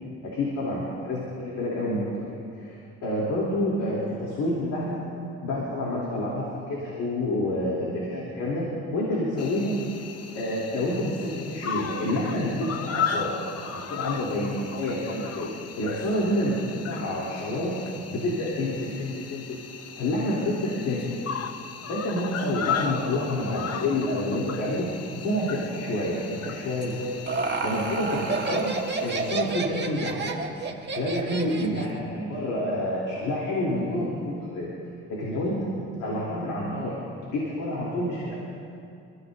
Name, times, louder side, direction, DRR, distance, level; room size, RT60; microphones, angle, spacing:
voice 1, 0.3-5.0 5.4-8.6 8.9-9.7 10.4-13.3 13.7-15.5 15.8-16.6 16.8-17.8 18.1-19.6 20.0-21.1 21.9-24.9 25.1-27.1 27.6-28.7 29.0-30.4 30.9-34.7 35.1-35.6 36.0-36.9 37.3-38.4, left 1 dB, 90° left, -6 dB, 3.6 m, -28 dB
Cricket, 9.4-29.3, left 7 dB, 55° left, 1.0 m, -36 dB
Laughter, 26.8-32.0, right 4 dB, 35° right, 1.7 m, -30 dB
29.5 x 15.0 x 2.8 m, 2.5 s
cardioid pair, 90°, 30 cm